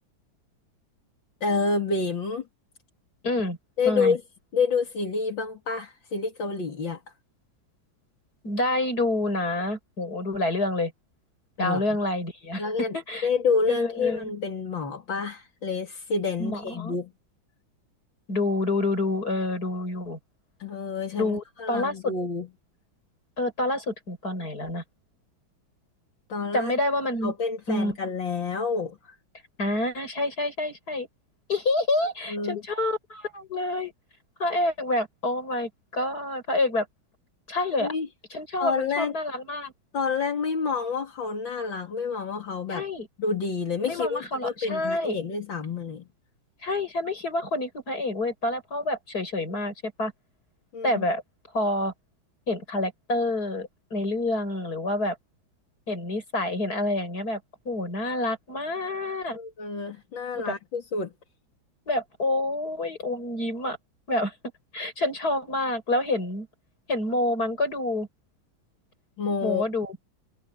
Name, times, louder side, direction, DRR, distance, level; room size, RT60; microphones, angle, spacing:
voice 1, 1.4-2.5 3.8-4.2 4.5-7.0 11.6-11.9 12.6-13.0 13.2-17.1 20.6-22.5 26.3-26.7 27.2-29.2 32.3-32.6 37.8-38.1 38.6-39.1 39.9-42.9 43.2-46.1 50.7-51.0 59.3-61.1 69.2-69.6, left 4 dB, 70° left, 3.4 m, -28 dB
voice 2, 3.2-3.6 3.9-4.2 8.4-10.9 11.6-13.3 13.7-14.3 16.4-17.0 18.3-20.2 21.2-22.1 23.4-24.8 26.5-27.3 27.7-28.0 29.6-31.1 31.5-33.9 34.4-36.9 37.5-37.9 38.3-39.7 42.7-43.1 43.9-45.2 46.6-50.1 50.8-51.2 51.5-51.9 52.5-55.2 55.9-57.4 57.7-59.4 60.3-60.5 61.9-63.8 64.1-64.3 64.7-66.5 66.9-68.1 69.4-70.0, left 2 dB, 50° left, 7.6 m, -28 dB
omnidirectional pair, 2.1 m